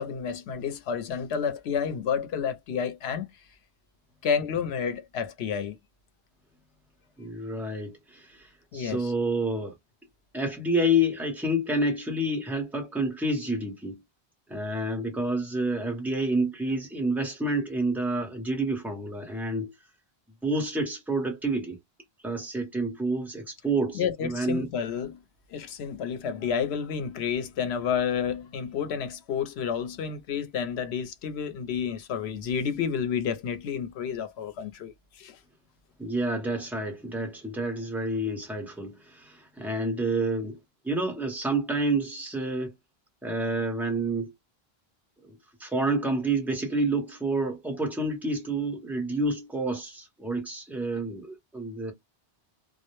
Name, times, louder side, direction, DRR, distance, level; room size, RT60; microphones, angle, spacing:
voice 1, 0.0-3.3 4.2-5.8 8.7-9.1 23.9-25.2 25.5-35.4, left 7 dB, 85° left, 0.9 m, -30 dB
voice 2, 7.2-8.5 8.7-9.7 10.3-14.0 14.5-19.7 20.4-21.8 22.2-24.7 36.0-40.6 40.8-42.7 43.2-44.3 45.3-51.9, right 1 dB, ahead, 0.6 m, -29 dB
2.2 x 2.1 x 2.9 m
omnidirectional pair, 1.1 m